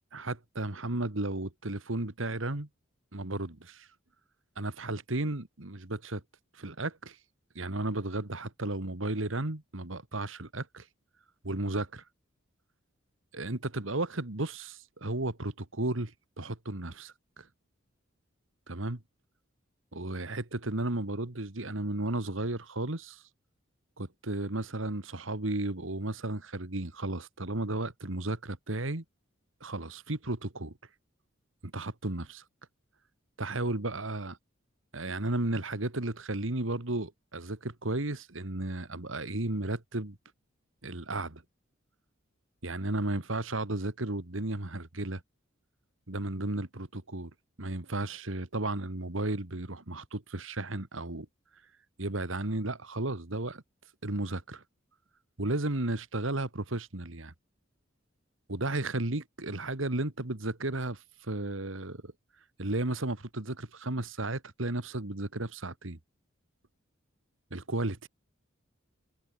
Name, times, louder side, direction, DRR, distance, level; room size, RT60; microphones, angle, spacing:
voice 1, 0.1-2.7 3.1-3.9 4.6-6.2 6.5-7.2 7.6-10.8 11.4-12.0 13.3-17.5 18.7-19.0 19.9-23.2 24.0-29.0 29.6-30.7 31.6-32.4 33.4-34.4 34.9-40.2 40.8-41.4 42.6-45.2 46.1-47.3 47.6-51.3 52.0-53.6 54.0-54.6 55.4-57.3 58.5-62.1 62.6-66.0 67.5-68.1, right 2 dB, 75° right, 2.1 m, -34 dB
open air
head